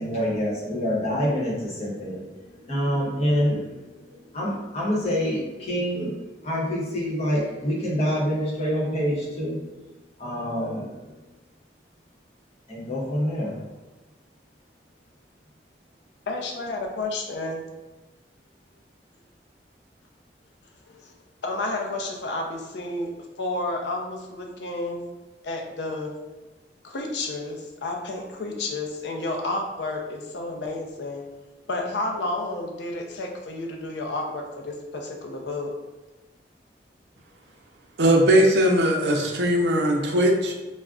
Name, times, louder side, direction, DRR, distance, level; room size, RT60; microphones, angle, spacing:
voice 1, 0.0-9.7 10.2-11.1 12.7-13.6, equal, 35° left, -6 dB, 0.8 m, -27 dB
voice 2, 16.3-17.6 20.9-21.1 21.4-23.1 23.4-25.1 25.4-26.1 26.8-31.2 31.7-35.7, left 2 dB, 75° left, 1 dB, 0.5 m, -31 dB
voice 3, 38.0-40.5, right 1 dB, 75° right, 1 dB, 0.5 m, -19 dB
2.3 x 2.1 x 3.6 m, 1.1 s
head